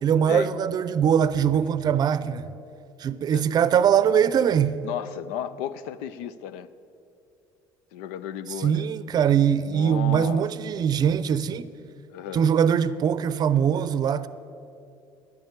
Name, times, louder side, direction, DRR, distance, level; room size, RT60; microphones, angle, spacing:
voice 1, 0.0-2.4 3.0-4.8 8.6-11.7 12.3-14.3, right 8 dB, 45° right, 0.6 m, -22 dB
voice 2, 4.8-6.7 7.9-8.9 9.7-10.4 12.1-12.5, left 10 dB, 85° left, 0.5 m, -34 dB
11.0 x 8.6 x 8.1 m
supercardioid pair, 90°, 10 cm